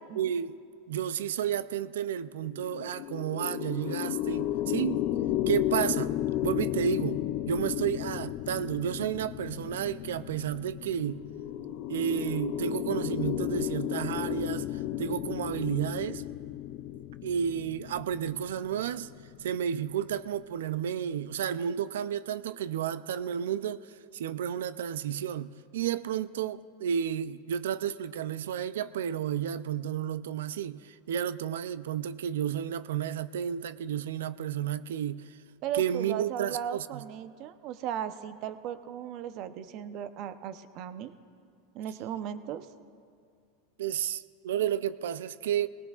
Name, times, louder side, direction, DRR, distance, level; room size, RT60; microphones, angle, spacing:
voice 1, 0.2-0.6 0.9-5.0 5.5-6.1 6.4-11.2 11.9-14.7 15.0-16.2 17.2-19.1 19.4-23.9 24.1-35.2 35.7-37.0 43.8-45.7, right 9 dB, 85° right, 0.4 m, -31 dB
sound 1, 2.4-19.9, left 13 dB, 55° left, 0.5 m, -33 dB
voice 2, 35.6-41.1 41.7-42.7, right 9 dB, 50° right, 0.7 m, -37 dB
19.5 x 18.0 x 2.4 m
hypercardioid pair, 115°, 0 cm